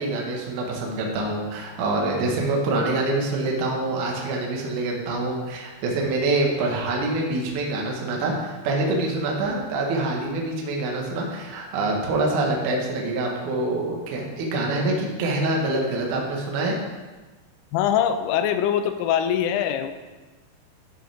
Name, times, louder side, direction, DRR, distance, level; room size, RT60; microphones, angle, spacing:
voice 1, 0.0-16.8, right 2 dB, 70° right, -1 dB, 1.9 m, -25 dB
voice 2, 17.7-19.9, left 9 dB, 85° left, 9 dB, 3.1 m, -23 dB
12.0 x 6.2 x 3.5 m, 1.3 s
omnidirectional pair, 5.6 m